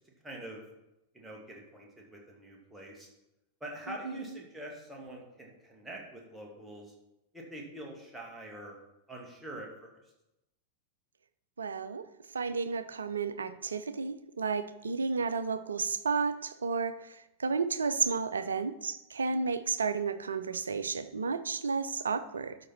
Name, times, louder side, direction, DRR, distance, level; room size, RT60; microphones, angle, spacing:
voice 1, 0.2-0.6 1.1-3.1 3.6-6.9 7.3-8.7 9.1-10.0, right 1 dB, 5° right, -2 dB, 2.4 m, -45 dB
voice 2, 11.6-12.1 12.3-22.6, right 5 dB, 70° right, 13 dB, 0.5 m, -32 dB
12.5 x 5.2 x 4.4 m, 0.92 s
figure-of-eight pair, 90°, 0 cm